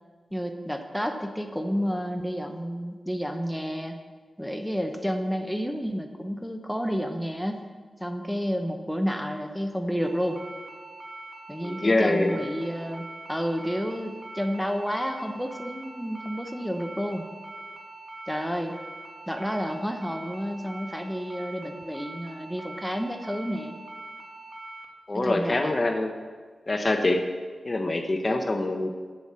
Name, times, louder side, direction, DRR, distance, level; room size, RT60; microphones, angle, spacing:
voice 1, 0.3-4.0 4.4-7.7 8.0-10.4 11.5-17.3 18.3-18.8 19.3-23.8 25.1-25.8 28.3-28.4, equal, ahead, 5 dB, 0.9 m, -30 dB
sound 1, 10.0-24.8, right 2 dB, 25° right, 1.9 m, -43 dB
voice 2, 11.6-12.4 25.1-26.2 26.7-27.2 27.6-28.9, left 2 dB, 35° left, 6 dB, 0.8 m, -25 dB
7.7 x 7.1 x 7.5 m, 1.5 s
wide cardioid pair, 80°, 0 cm